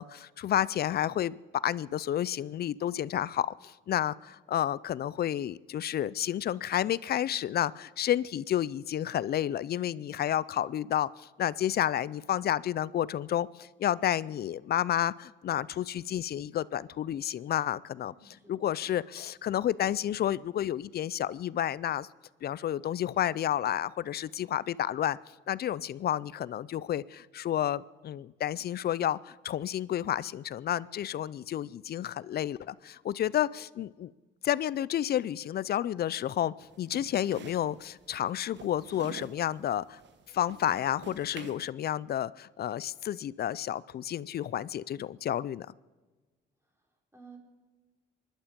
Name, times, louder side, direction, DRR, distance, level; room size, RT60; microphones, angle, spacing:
voice 1, 0.0-1.4 1.6-22.1 22.4-25.2 25.5-34.1 34.4-40.0 40.3-45.7, left 11 dB, 55° left, 0.4 m, -31 dB
voice 2, 17.9-18.7 46.6-47.4, right 4 dB, 15° right, 4.2 m, -56 dB
sound 1, 36.6-41.7, right 6 dB, 65° right, 1.4 m, -49 dB
24.0 x 11.5 x 5.2 m
cardioid pair, 90°, 20 cm